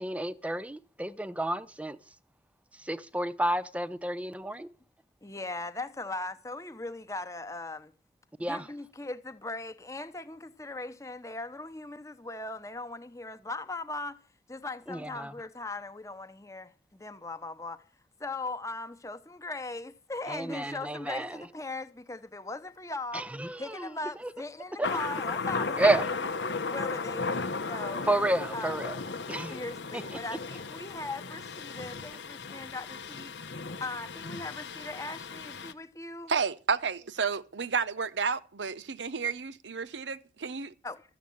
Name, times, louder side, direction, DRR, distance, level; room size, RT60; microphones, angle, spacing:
voice 1, 0.0-2.0 2.8-4.7 8.4-8.7 14.9-15.3 20.3-21.4 23.1-23.9 24.8-24.9 25.8-26.1 28.1-28.9 29.3-29.6 29.9-30.2, right 1 dB, 5° right, 0.6 m, -30 dB
voice 2, 5.2-7.9 8.4-14.2 14.5-17.8 18.2-23.3 23.6-26.0 26.5-28.1 28.5-28.8 29.1-33.3 33.8-36.3 40.8-41.0, left 2 dB, 15° left, 0.9 m, -39 dB
Thunder, 24.8-35.7, left 4 dB, 80° left, 1.0 m, -35 dB
voice 3, 36.3-40.7, right 5 dB, 80° right, 0.8 m, -31 dB
14.0 x 7.3 x 8.6 m
head